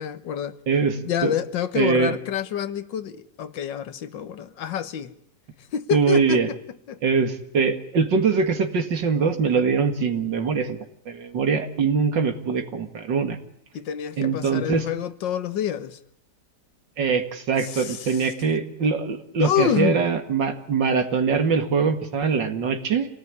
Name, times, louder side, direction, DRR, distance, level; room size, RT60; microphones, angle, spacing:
voice 1, 0.0-0.6 1.0-5.1 5.7-6.6 6.9-7.0 13.7-16.0 17.6-18.3 19.4-20.0, left 9 dB, 80° left, 1.9 m, -27 dB
voice 2, 0.7-1.3 1.8-2.1 5.9-6.5 7.0-10.8 11.1-13.4 14.2-14.9 17.0-23.1, right 5 dB, 75° right, 2.7 m, -23 dB
26.5 x 18.0 x 9.7 m
omnidirectional pair, 2.0 m